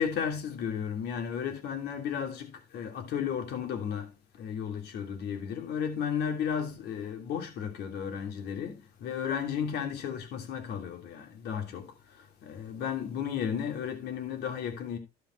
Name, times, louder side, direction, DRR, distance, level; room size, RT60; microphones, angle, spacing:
voice 1, 0.0-4.1 4.4-11.9 12.4-15.0, left 8 dB, 75° left, 2.9 m, -33 dB
15.5 x 5.4 x 3.2 m
cardioid pair, 110°, 17 cm